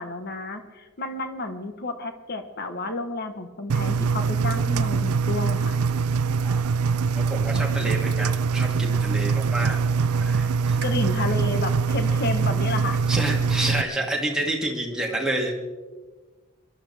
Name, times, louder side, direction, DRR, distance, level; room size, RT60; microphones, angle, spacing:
voice 1, 0.0-5.8 10.8-13.0, left 2 dB, 45° left, 8 dB, 1.1 m, -31 dB
Engine, 3.7-13.8, right 5 dB, 85° right, 0.5 m, -23 dB
voice 2, 6.4-9.8 10.2-10.8 13.1-15.5, right 1 dB, 5° right, -2 dB, 2.2 m, -29 dB
24.0 x 12.5 x 3.4 m, 1.3 s
head